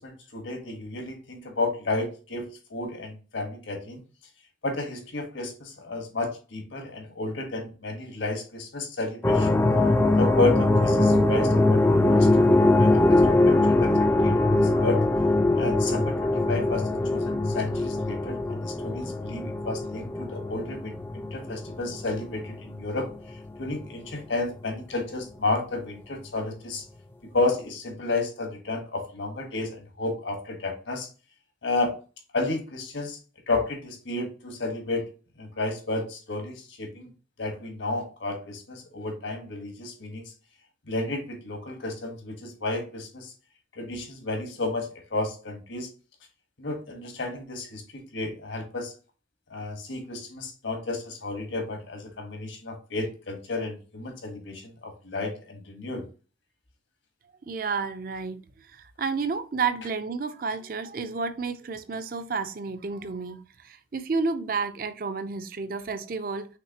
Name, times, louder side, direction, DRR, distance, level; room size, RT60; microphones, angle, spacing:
voice 1, 0.0-4.0 4.6-9.5 10.2-15.0 15.5-23.1 23.6-26.8 27.3-31.1 31.6-31.9 32.3-33.2 33.5-35.0 35.4-37.1 37.4-40.2 40.9-43.3 43.8-45.9 46.6-48.9 49.5-56.0, left 2 dB, 80° left, 1.3 m, -32 dB
sound 1, 9.2-23.1 23.6-24.1, left 2 dB, 10° left, 0.3 m, -22 dB
voice 2, 57.5-58.4 58.7-66.5, right 4 dB, 50° right, 0.5 m, -31 dB
5.9 x 3.2 x 2.8 m
head